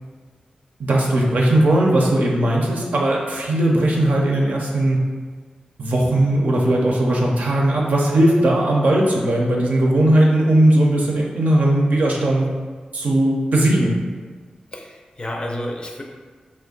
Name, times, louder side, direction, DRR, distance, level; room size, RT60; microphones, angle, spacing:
voice 1, 0.8-5.0 5.8-12.5 12.9-14.0, right 1 dB, 75° right, -2 dB, 0.5 m, -18 dB
voice 2, 14.7-16.0, left 1 dB, 35° left, 1 dB, 0.4 m, -30 dB
2.4 x 2.1 x 3.8 m, 1.5 s
cardioid pair, 50°, 3 cm